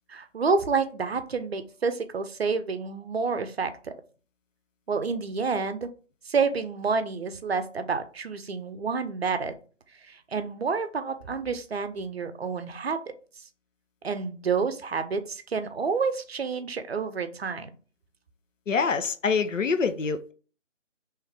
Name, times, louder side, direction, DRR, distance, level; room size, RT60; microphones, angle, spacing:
voice 1, 0.1-3.9 4.9-5.9 6.3-9.5 10.1-13.0 14.0-17.7, right 5 dB, 55° right, 0.6 m, -29 dB
voice 2, 18.7-20.3, left 5 dB, 85° left, 0.6 m, -25 dB
3.1 x 3.1 x 3.5 m
figure-of-eight pair, 155°, 37 cm